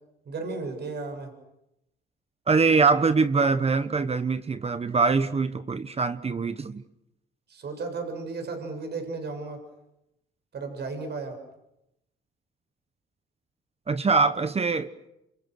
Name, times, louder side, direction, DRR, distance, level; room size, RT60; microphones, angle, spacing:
voice 1, 0.3-1.3 7.5-9.6 10.5-11.4, right 3 dB, 55° right, 5 dB, 7.6 m, -34 dB
voice 2, 2.5-6.8 13.9-14.9, right 4 dB, 30° right, 11 dB, 1.2 m, -23 dB
29.0 x 27.5 x 6.4 m, 0.85 s
cardioid pair, 90°, 20 cm